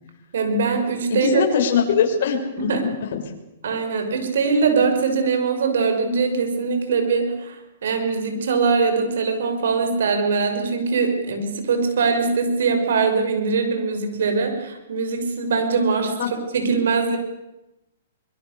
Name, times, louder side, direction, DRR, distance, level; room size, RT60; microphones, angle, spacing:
voice 1, 0.3-1.4 2.6-2.8 3.6-16.1 16.5-17.2, right 4 dB, 75° right, 6 dB, 6.1 m, -22 dB
voice 2, 1.2-3.2 16.2-16.3, left 7 dB, 55° left, 1 dB, 6.2 m, -22 dB
24.5 x 23.0 x 6.9 m, 0.93 s
hypercardioid pair, 150°, 0 cm